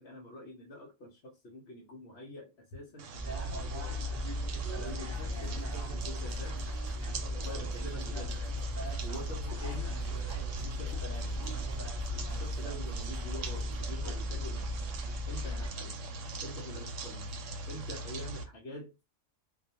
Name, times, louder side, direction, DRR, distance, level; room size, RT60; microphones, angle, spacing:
voice 1, 0.0-3.8 4.8-6.6 7.3-8.4 9.0-10.0 10.6-11.5 12.3-14.8 15.3-16.1 16.4-17.4 17.7-18.9, left 1 dB, 65° left, 0.9 m, -46 dB
sound 1, 3.0-18.4, right 2 dB, 75° right, 0.9 m, -41 dB
sound 2, 3.2-15.7, equal, 15° left, 0.7 m, -36 dB
sound 3, 4.9-14.0, left 2 dB, 30° right, 0.5 m, -50 dB
2.3 x 2.2 x 2.7 m
omnidirectional pair, 1.3 m